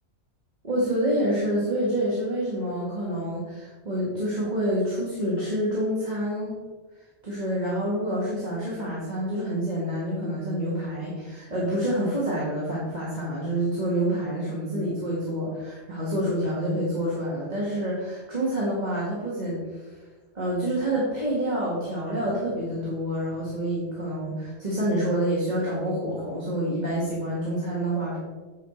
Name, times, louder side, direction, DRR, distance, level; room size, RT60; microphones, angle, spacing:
voice 1, 0.6-6.5 7.2-20.0 20.3-28.2, right 1 dB, 35° right, -6 dB, 1.9 m, -27 dB
9.5 x 4.7 x 4.5 m, 1.3 s
omnidirectional pair, 1.4 m